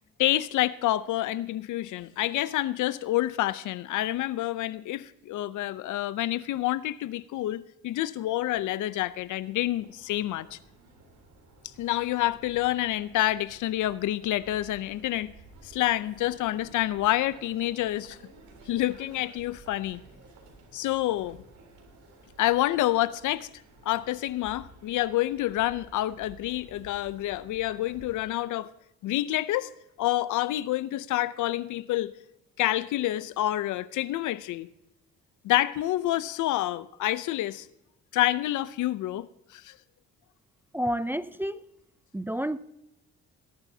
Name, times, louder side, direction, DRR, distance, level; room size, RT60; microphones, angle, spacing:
voice 1, 0.2-10.6 11.8-15.3 15.7-18.2 18.7-20.0 20.7-21.4 22.4-23.5 23.9-28.7 29.0-29.7 30.0-32.1 32.6-34.7 35.4-37.7 38.1-39.3 39.5-39.7, left 15 dB, 80° left, 0.6 m, -28 dB
sound 1, 9.0-28.2, right 2 dB, 75° right, 3.5 m, -53 dB
voice 2, 40.7-41.6 42.1-42.6, equal, 5° right, 0.4 m, -29 dB
19.0 x 11.5 x 2.8 m
cardioid pair, 90°, 30 cm